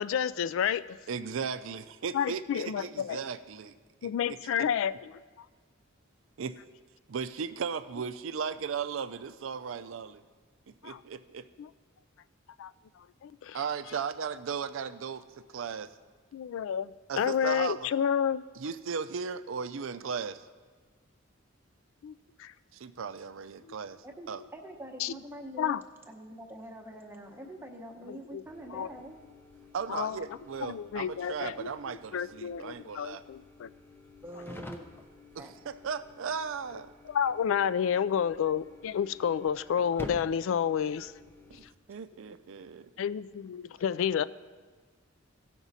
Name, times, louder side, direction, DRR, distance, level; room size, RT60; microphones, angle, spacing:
voice 1, 0.0-1.0 2.1-3.2 4.0-4.9 10.8-11.0 11.6-11.7 12.6-12.7 13.2-13.6 16.3-18.4 22.0-22.1 22.4-22.5 23.6-23.7 25.0-25.2 25.6-25.8 28.1-28.4 28.7-28.9 29.9-30.2 30.6-33.7 37.1-41.1 43.0-44.2, left 8 dB, 70° left, 16 dB, 0.3 m, -30 dB
voice 2, 1.1-3.7 4.0-4.1 6.4-6.5 7.1-10.2 10.8-11.4 13.5-15.3 15.5-15.9 17.1-17.9 18.6-20.4 22.7-24.0 24.3-24.4 29.7-33.2 35.4-36.9 41.5-41.6 41.9-42.9, right 6 dB, 70° right, 12 dB, 0.5 m, -36 dB
voice 3, 24.0-25.8 26.0-29.2 34.2-34.9 35.4-35.6 43.7-43.8, right 1 dB, 10° right, 1 dB, 0.9 m, -45 dB
sound 1, 28.5-41.7, left 2 dB, 10° left, 0.6 m, -50 dB
16.5 x 6.0 x 4.1 m, 1.5 s
head